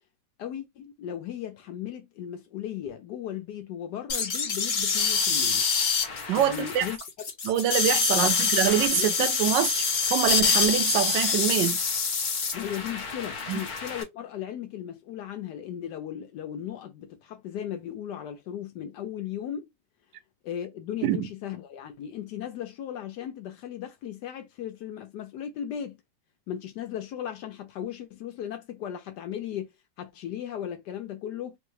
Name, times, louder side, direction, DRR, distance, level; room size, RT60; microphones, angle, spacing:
voice 1, 0.4-5.7 6.4-7.0 8.1-8.3 8.9-9.3 12.5-19.7 20.4-26.0 26.5-29.7 30.0-31.6, left 10 dB, 75° left, 1.1 m, -36 dB
sound 1, 4.1-14.0, left 5 dB, 50° left, 0.5 m, -26 dB
voice 2, 6.3-6.9 7.4-11.8 13.5-13.6 21.0-21.3, right 10 dB, 85° right, 1.3 m, -25 dB
3.9 x 2.1 x 3.1 m
omnidirectional pair, 1.9 m